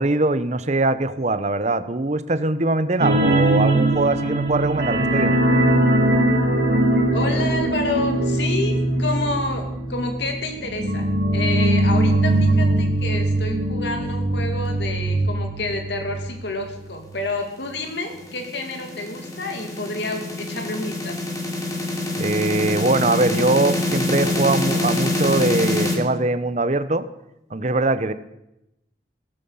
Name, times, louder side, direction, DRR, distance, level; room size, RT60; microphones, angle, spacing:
voice 1, 0.0-5.4 22.2-27.1 27.5-28.1, right 2 dB, 40° right, 13 dB, 0.8 m, -22 dB
sound 1, 3.0-16.3 16.6-16.7 17.1-17.2, right 1 dB, 65° right, 2.5 m, -21 dB
voice 2, 7.1-9.6 9.9-11.1 11.3-21.2, left 2 dB, 75° left, 4 dB, 2.4 m, -29 dB
sound 2, 17.8-25.9, left 2 dB, 20° left, 3.0 m, -25 dB
16.5 x 14.5 x 5.6 m, 0.87 s
head